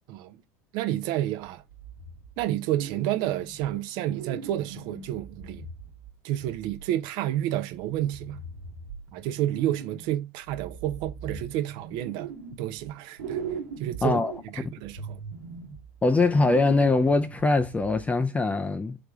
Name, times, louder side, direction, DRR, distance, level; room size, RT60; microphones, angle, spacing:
voice 1, 0.7-1.6 2.4-5.7 6.2-8.4 9.1-12.3 12.6-13.4 13.8-15.2, right 13 dB, 60° right, 0.5 m, -30 dB
sound 1, 1.7-2.5 2.8-3.8 4.1-7.0 7.8-10.2 10.5-12.9 13.2-18.1, right 5 dB, 75° right, 1.1 m, -40 dB
voice 2, 14.0-14.3 16.0-19.0, left 3 dB, 15° left, 0.4 m, -22 dB
3.4 x 3.4 x 3.5 m
hypercardioid pair, 80°, 9 cm